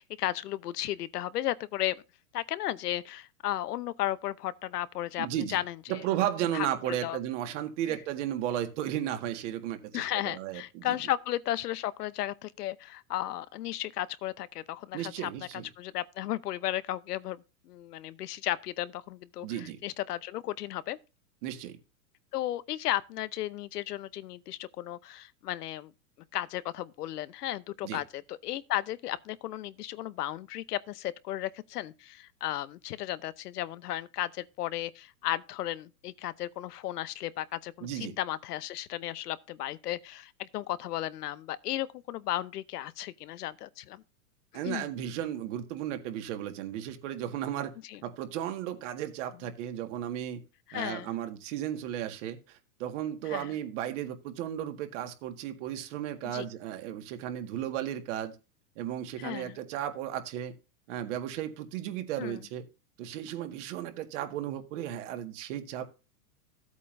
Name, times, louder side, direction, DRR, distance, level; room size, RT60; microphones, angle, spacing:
voice 1, 0.0-2.0 2.3-6.0 6.5-7.2 9.9-15.3 15.8-21.0 22.3-25.9 26.3-44.0 44.6-44.9 47.9-48.0 50.7-51.1 53.3-53.5 56.2-56.5 59.2-59.6 62.2-62.4, left 14 dB, 80° left, 0.9 m, -34 dB
voice 2, 5.2-5.6 5.9-11.0 14.9-15.7 19.4-19.8 21.4-21.8 27.8-28.0 37.8-38.1 44.5-47.7 48.0-50.4 50.7-58.3 58.7-60.5 60.9-62.6 63.0-65.8, right 11 dB, 50° right, 1.8 m, -34 dB
14.0 x 8.3 x 2.6 m
supercardioid pair, 150°, 46 cm